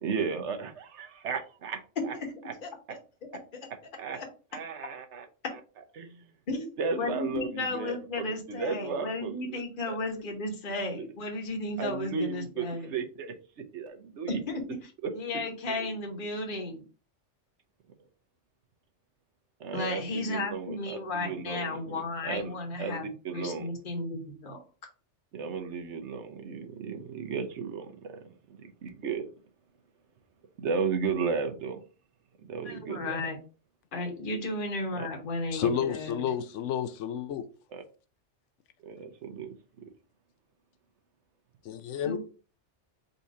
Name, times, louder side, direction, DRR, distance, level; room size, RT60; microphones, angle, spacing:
voice 1, 0.0-2.1 2.5-2.6 4.0-4.2 4.5-5.2 6.0-6.3 6.8-8.0 8.5-9.4 9.9-10.0 11.8-14.4 15.0-15.1 15.7-15.9 19.6-22.5 22.8-23.0 23.2-23.7 25.3-29.3 30.6-31.8 32.4-33.2 34.9-35.1 35.6-35.8 37.7-37.8 38.8-39.5, right 5 dB, 75° right, 1.1 m, -34 dB
voice 2, 2.0-2.3 2.6-2.7 3.5-3.6 4.1-4.2 6.5-12.9 14.3-14.8 15.1-16.8 19.7-24.6 32.6-33.4 33.9-36.3 42.0-42.2, left 2 dB, 45° left, 1.2 m, -34 dB
voice 3, 35.5-37.5 41.6-42.2, left 8 dB, 85° left, 0.9 m, -31 dB
4.1 x 2.8 x 4.7 m
omnidirectional pair, 1.2 m